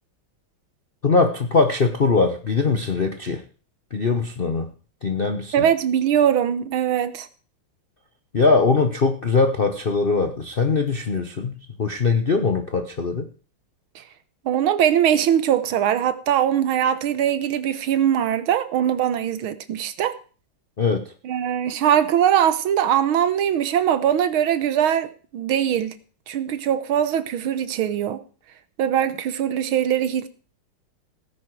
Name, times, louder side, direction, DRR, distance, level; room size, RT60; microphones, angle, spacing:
voice 1, 1.0-3.4 3.9-4.7 5.0-5.5 8.3-13.3 20.8-21.1, left 4 dB, 50° left, 0.6 m, -21 dB
voice 2, 5.5-7.3 14.0-14.1 14.5-20.2 21.2-25.9 26.3-28.2 28.8-30.3, right 10 dB, 75° right, 1.7 m, -21 dB
17.0 x 9.8 x 4.7 m
omnidirectional pair, 2.4 m